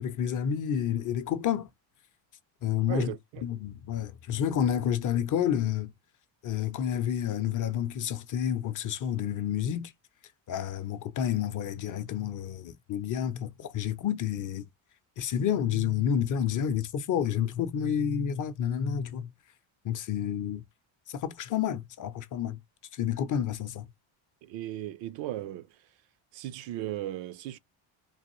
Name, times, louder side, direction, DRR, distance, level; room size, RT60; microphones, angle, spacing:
voice 1, 0.0-1.7 2.6-3.1 3.4-5.9 6.4-9.9 10.5-14.6 15.2-19.3 19.8-20.6 21.1-22.6 23.0-23.9, left 9 dB, 40° left, 0.5 m, -29 dB
voice 2, 2.8-3.4 24.4-25.8 26.3-27.6, right 13 dB, 65° right, 0.5 m, -36 dB
3.4 x 2.5 x 3.0 m
cardioid pair, 130°, 48 cm